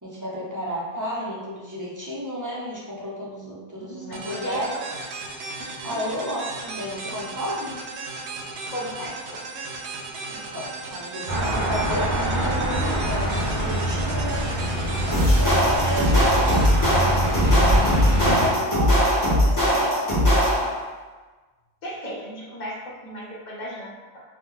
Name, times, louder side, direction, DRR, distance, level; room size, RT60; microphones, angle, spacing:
voice 1, 0.0-4.7 5.8-7.7 10.3-14.5 14.7-16.7 17.7-20.1, equal, 25° right, -6 dB, 0.4 m, -32 dB
voice 2, 3.8-4.8 5.6-6.0 8.7-9.6 21.8-24.2, equal, 50° left, -4 dB, 0.7 m, -36 dB
sound 1, 4.1-17.8, right 3 dB, 85° right, 0.8 m, -36 dB
sound 2, 11.3-18.5, right 1 dB, 50° right, 0.8 m, -25 dB
sound 3, 15.1-20.8, equal, 20° left, 1.0 m, -20 dB
2.9 x 2.2 x 3.6 m, 1.3 s
omnidirectional pair, 1.1 m